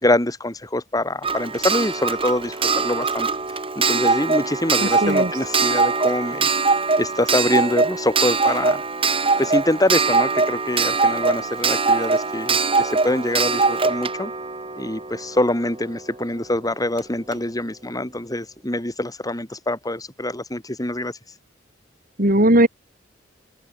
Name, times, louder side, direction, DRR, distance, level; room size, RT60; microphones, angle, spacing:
voice 1, 0.0-9.1 9.4-14.3 14.8-21.4, left 1 dB, 20° left, 3.2 m, -25 dB
Clock, 1.2-15.8 17.0-17.1 17.3-17.4, right 4 dB, 30° right, 6.6 m, -22 dB
voice 2, 4.8-5.3 22.2-22.7, right 1 dB, 50° right, 6.4 m, -17 dB
open air
head